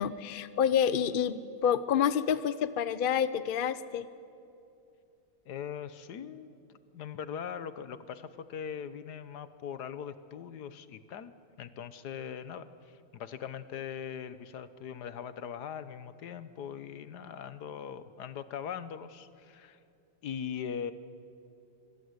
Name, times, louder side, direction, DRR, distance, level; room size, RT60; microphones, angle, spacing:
voice 1, 0.0-4.1, left 8 dB, 85° left, 14 dB, 0.4 m, -28 dB
voice 2, 5.4-6.6 6.9-19.8 20.2-20.9, left 8 dB, 60° left, 13 dB, 1.5 m, -41 dB
26.5 x 22.5 x 9.6 m, 2.6 s
omnidirectional pair, 2.1 m